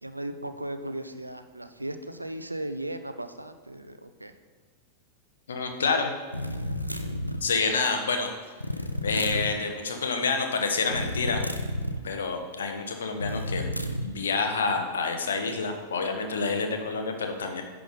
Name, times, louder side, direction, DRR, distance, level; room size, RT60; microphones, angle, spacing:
voice 1, 0.0-4.3, right 1 dB, 85° right, 9 dB, 0.5 m, -36 dB
voice 2, 5.5-6.1 7.4-8.3 9.0-11.4 12.0-13.6 14.0-17.6, left 4 dB, 65° left, 4 dB, 1.0 m, -28 dB
sound 1, 6.3-7.5 8.6-9.5 10.9-12.0 13.2-14.1, left 1 dB, 90° left, 0.5 m, -31 dB
10.0 x 3.8 x 5.2 m, 1.5 s
figure-of-eight pair, 90°, 0 cm